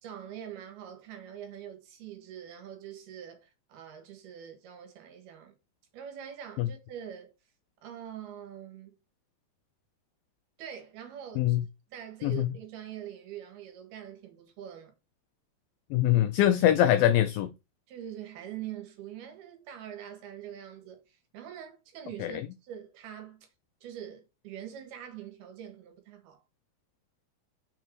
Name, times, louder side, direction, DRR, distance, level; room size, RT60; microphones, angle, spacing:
voice 1, 0.0-5.5 5.9-7.3 7.8-9.0 10.6-11.6 11.9-14.9 17.9-23.5 23.8-26.4, right 10 dB, 75° right, 3.3 m, -44 dB
voice 2, 15.9-17.5 22.2-22.3, left 12 dB, 85° left, 2.0 m, -23 dB
6.5 x 4.7 x 4.5 m
omnidirectional pair, 4.7 m